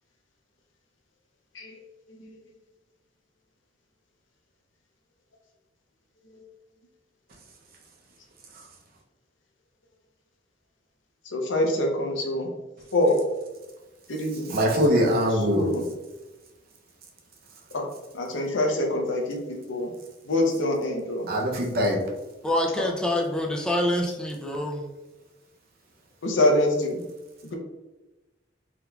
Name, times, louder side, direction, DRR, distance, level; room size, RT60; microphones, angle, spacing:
voice 1, 11.3-12.5 12.9-13.2 14.1-14.5 15.5-15.9 17.7-17.9 18.1-19.9 20.2-21.3 22.8-22.9 26.2-27.0, left 1 dB, 90° left, 1 dB, 0.7 m, -25 dB
voice 2, 14.5-15.7 21.3-22.0, equal, 55° right, 0 dB, 0.6 m, -22 dB
voice 3, 22.4-24.9, left 1 dB, 5° left, 0 dB, 0.4 m, -26 dB
3.6 x 2.9 x 2.3 m, 1.1 s
head